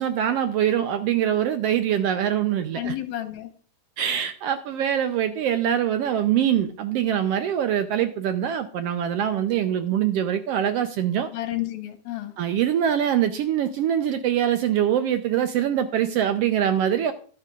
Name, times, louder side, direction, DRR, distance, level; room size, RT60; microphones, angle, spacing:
voice 1, 0.0-2.9 4.0-11.3 12.4-17.1, right 10 dB, 85° right, 8 dB, 1.3 m, -23 dB
voice 2, 2.7-3.5 11.3-12.4, left 13 dB, 70° left, 7 dB, 2.5 m, -31 dB
13.5 x 11.5 x 2.4 m, 0.43 s
omnidirectional pair, 3.6 m